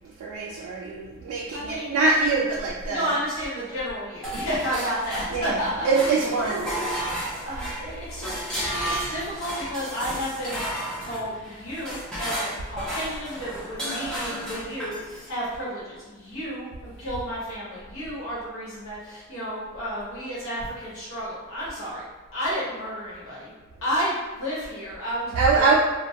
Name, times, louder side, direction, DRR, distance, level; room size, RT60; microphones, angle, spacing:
voice 1, 0.2-3.1 5.3-6.9 25.3-25.7, right 4 dB, 90° right, -3 dB, 0.3 m, -24 dB
voice 2, 1.5-1.9 2.8-5.9 7.5-22.0 22.3-23.5 23.8-25.7, equal, 70° left, -8 dB, 1.1 m, -32 dB
sound 1, 4.2-5.6 5.9-15.3, equal, 5° left, 0.5 m, -33 dB
2.2 x 2.1 x 2.7 m, 1.3 s
head